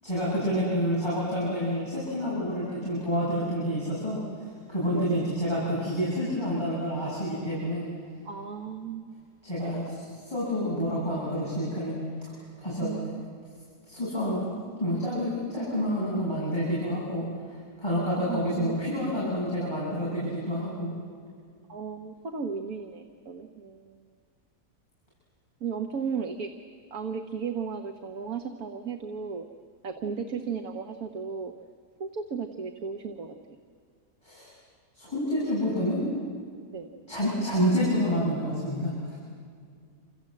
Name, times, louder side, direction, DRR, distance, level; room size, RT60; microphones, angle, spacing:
voice 1, 0.0-7.8 9.4-12.0 12.6-12.9 13.9-14.4 14.8-20.9 34.2-34.5 34.9-36.1 37.1-39.2, equal, 15° left, -8 dB, 7.8 m, -28 dB
voice 2, 4.9-5.3 8.2-9.1 12.8-13.3 18.3-18.8 20.6-20.7 21.7-24.1 25.6-26.5 26.9-29.5 29.8-31.5 32.0-33.4 36.7-36.9, right 6 dB, 70° right, 6 dB, 1.7 m, -35 dB
29.0 x 26.0 x 7.8 m, 2.2 s
omnidirectional pair, 1.6 m